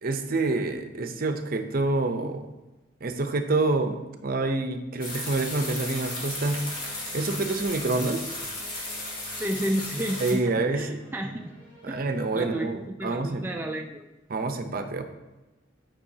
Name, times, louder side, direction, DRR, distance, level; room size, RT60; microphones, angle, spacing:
voice 1, 0.0-2.5 3.0-6.6 7.1-8.3 10.2-11.0 11.8-13.5 14.3-15.0, right 3 dB, 50° right, 7 dB, 0.6 m, -27 dB
sound 1, 5.0-10.3, left 2 dB, 50° left, 1.7 m, -35 dB
sound 2, 5.9-12.7, right 2 dB, 35° left, 2.1 m, -51 dB
voice 2, 9.4-11.5 11.9-12.0 12.3-14.0, right 1 dB, 10° right, 1 dB, 0.3 m, -32 dB
10.0 x 5.4 x 2.8 m, 1.1 s
head